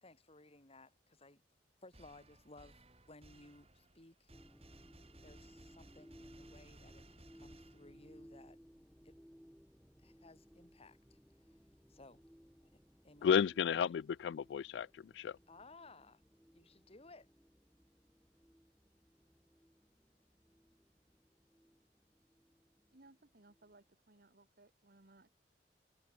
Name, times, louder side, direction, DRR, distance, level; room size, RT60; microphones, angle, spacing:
voice 1, 0.0-1.4 1.8-4.3 5.2-8.6 9.0-9.2 10.0-11.2 11.9-12.2 13.0-13.4 15.5-16.2 16.5-17.3, left 2 dB, 35° left, 3.4 m, -59 dB
sound 1, 1.9-8.3, right 2 dB, 35° right, 5.8 m, -61 dB
sound 2, 4.3-23.7, equal, ahead, 5.3 m, -62 dB
voice 2, 13.2-15.4, left 7 dB, 75° left, 0.3 m, -33 dB
voice 3, 22.9-25.3, right 2 dB, 60° right, 1.9 m, -63 dB
head